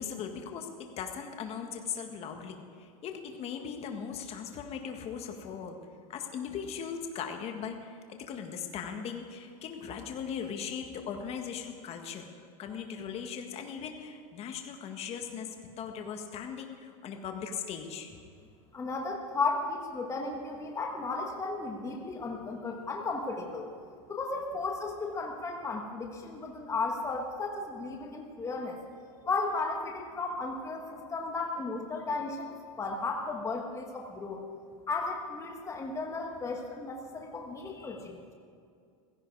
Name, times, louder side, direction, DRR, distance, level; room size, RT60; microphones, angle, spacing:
voice 1, 0.0-5.8 6.1-12.3 12.6-15.5 15.8-18.1, left 7 dB, 35° left, 4 dB, 1.8 m, -39 dB
voice 2, 18.7-23.7 24.1-28.8 29.2-32.5 32.8-34.4 34.9-38.2, left 3 dB, 15° left, 1 dB, 1.6 m, -34 dB
16.5 x 15.5 x 4.8 m, 2.3 s
supercardioid pair, 135°, 18 cm